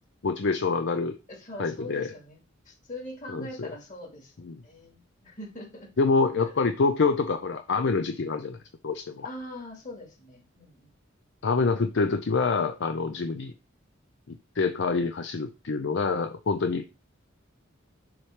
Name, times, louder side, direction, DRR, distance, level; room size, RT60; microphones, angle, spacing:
voice 1, 0.2-1.2 1.6-2.1 3.3-3.7 4.4-4.6 6.0-8.6 8.8-9.3 11.4-13.5 14.3-16.9, left 4 dB, 60° left, 7 dB, 0.5 m, -26 dB
voice 2, 1.3-2.4 2.7-4.3 4.6-5.9 6.4-6.5 9.2-10.9, left 1 dB, 40° left, 0 dB, 2.4 m, -42 dB
7.1 x 3.3 x 4.8 m, 0.29 s
head